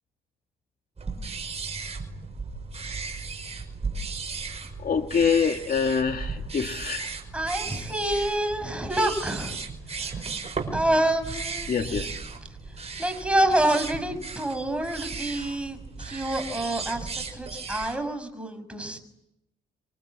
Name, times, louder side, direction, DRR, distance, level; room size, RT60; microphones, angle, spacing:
sound 1, 1.0-18.0, right 4 dB, 30° right, 5.4 m, -36 dB
voice 1, 4.8-7.1 11.7-12.2, left 6 dB, 45° left, 5 dB, 1.9 m, -25 dB
voice 2, 7.3-9.6 10.0-10.1 10.7-11.8 13.0-19.0, right 1 dB, 5° right, 6 dB, 6.4 m, -27 dB
27.0 x 24.0 x 8.7 m, 0.84 s
cardioid pair, 90°, 20 cm